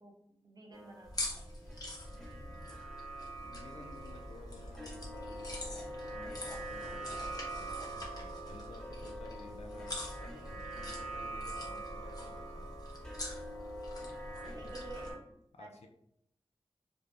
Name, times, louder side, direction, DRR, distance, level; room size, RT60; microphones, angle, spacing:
voice 1, 0.0-1.5 7.6-7.9 14.5-15.9, right 3 dB, 40° right, 1 dB, 0.6 m, -52 dB
sound 1, 0.7-15.2, right 2 dB, 5° left, 0.9 m, -45 dB
sound 2, 1.0-15.1, left 1 dB, 35° left, 0.8 m, -45 dB
voice 2, 2.1-2.8 3.4-12.8 14.2-14.7 15.5-15.9, left 3 dB, 85° left, 4 dB, 0.4 m, -55 dB
sound 3, 4.0-12.0, equal, 80° right, 0.5 m, -54 dB
2.5 x 2.0 x 3.2 m, 0.76 s
cardioid pair, 50°, 11 cm